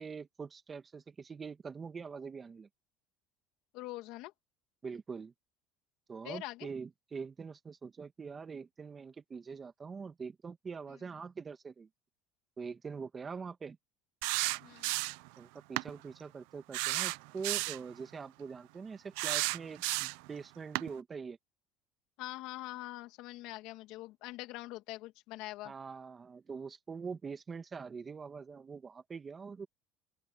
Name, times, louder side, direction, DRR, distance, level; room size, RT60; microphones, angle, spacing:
voice 1, 0.0-2.7 4.8-5.3 6.1-11.9 12.6-13.8 15.4-21.4 25.6-29.7, right 5 dB, 25° right, 2.2 m, -44 dB
voice 2, 3.7-4.3 6.2-6.7 14.6-14.9 22.2-25.7, left 18 dB, 70° left, 2.3 m, -44 dB
sound 1, 14.2-15.3 15.8-15.9 16.7-17.8 19.2-20.3 20.8-20.9, right 23 dB, 80° right, 0.6 m, -33 dB
open air
cardioid pair, 125°, 0 cm